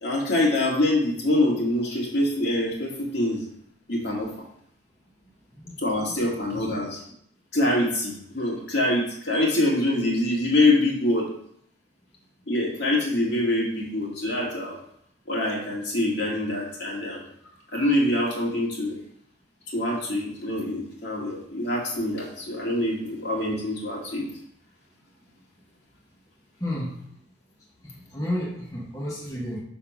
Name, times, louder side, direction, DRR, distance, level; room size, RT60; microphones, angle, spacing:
voice 1, 0.0-3.4 3.9-4.3 5.8-7.0 7.5-11.3 12.5-14.8 15.3-17.2 17.7-19.0 19.7-24.3, left 1 dB, 60° left, -3 dB, 2.1 m, -25 dB
voice 2, 26.6-27.0 28.1-29.6, left 1 dB, 15° left, -4 dB, 1.0 m, -31 dB
6.6 x 3.7 x 5.9 m, 0.69 s
head